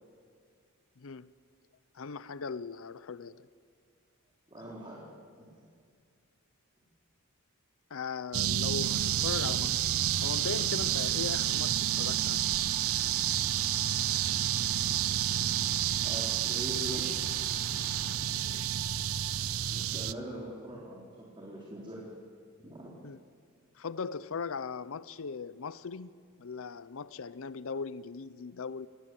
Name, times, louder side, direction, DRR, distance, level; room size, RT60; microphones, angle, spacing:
voice 1, 1.0-1.3 1.9-3.5 7.9-9.9 10.2-12.5 23.0-23.2 23.7-28.9, left 5 dB, 65° left, 0.6 m, -39 dB
voice 2, 4.5-5.0 5.3-5.4 12.5-12.6 13.4-13.5 16.0-17.3 19.6-22.0 22.6-22.9, equal, 20° right, 3.7 m, -42 dB
sound 1, 8.3-20.1, right 11 dB, 65° right, 0.6 m, -30 dB
sound 2, 8.8-18.2, left 1 dB, 90° left, 2.8 m, -46 dB
sound 3, 11.1-19.4, right 4 dB, 85° right, 2.0 m, -53 dB
28.0 x 18.5 x 7.7 m
head